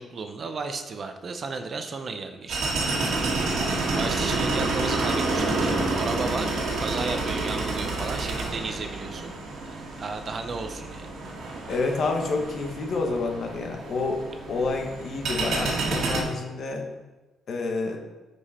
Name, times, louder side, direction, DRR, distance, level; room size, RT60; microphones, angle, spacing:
voice 1, 0.0-2.7 3.9-9.4 9.6-11.1, right 4 dB, 35° right, 7 dB, 0.7 m, -34 dB
sound 1, 2.5-16.2, right 3 dB, 65° right, 2.1 m, -29 dB
voice 2, 11.7-16.9 17.5-18.0, left 3 dB, 50° left, 3 dB, 1.4 m, -28 dB
13.0 x 5.1 x 4.3 m, 1.2 s
cardioid pair, 145°, 0 cm